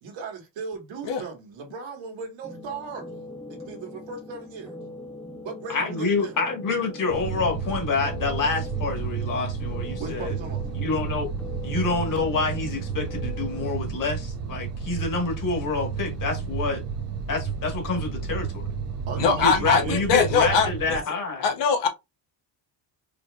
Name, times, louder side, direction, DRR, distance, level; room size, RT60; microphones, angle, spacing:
voice 1, 0.0-3.1 3.5-4.8 5.4-6.4 10.0-10.7 19.1-20.4 20.7-20.8, right 4 dB, 75° right, 1.8 m, -37 dB
sound 1, 2.4-13.7, left 2 dB, 5° left, 0.4 m, -42 dB
voice 2, 5.7-10.3 10.7-11.3 11.6-16.8 17.3-18.6 19.2-21.4, left 4 dB, 45° left, 1.7 m, -27 dB
sound 2, 7.1-21.0, right 6 dB, 35° right, 0.7 m, -32 dB
voice 3, 19.2-21.0 21.4-21.9, left 5 dB, 65° left, 1.1 m, -22 dB
4.9 x 3.2 x 2.5 m
cardioid pair, 150°, 45 cm